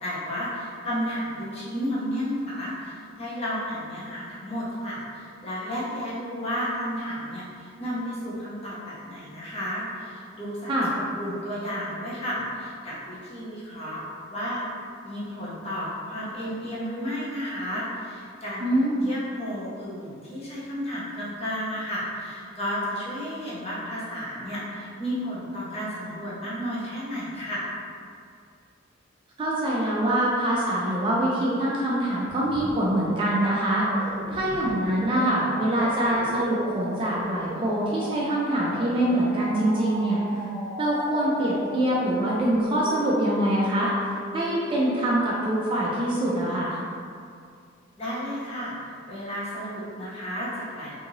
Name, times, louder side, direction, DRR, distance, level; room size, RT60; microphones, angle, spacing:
voice 1, 0.0-14.0 14.3-14.6 15.0-27.7 48.0-50.9, equal, 30° left, -8 dB, 0.6 m, -32 dB
voice 2, 18.6-19.1 29.4-33.9 34.3-40.2 40.8-46.8, right 1 dB, 25° right, -5 dB, 0.3 m, -24 dB
sound 1, 32.3-45.1, right 1 dB, 55° right, 0.8 m, -38 dB
2.8 x 2.7 x 2.6 m, 2.3 s
head